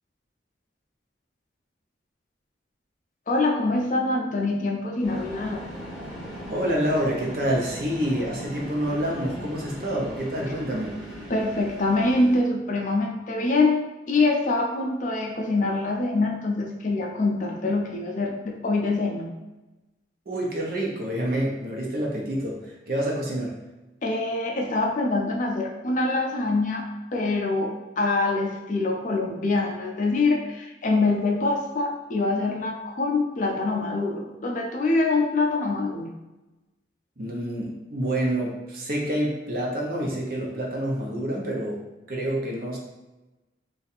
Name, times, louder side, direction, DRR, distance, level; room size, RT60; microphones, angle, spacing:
voice 1, 3.3-5.6 11.3-13.8 14.1-19.3 24.0-26.8 27.1-36.1, left 2 dB, 45° left, 1 dB, 0.5 m, -24 dB
sound 1, 5.0-12.4, equal, 5° right, 0.8 m, -38 dB
voice 2, 6.5-10.9 20.3-23.5 37.2-41.8 42.1-42.8, right 1 dB, 50° right, -2 dB, 0.8 m, -27 dB
2.7 x 2.4 x 4.1 m, 1.1 s
head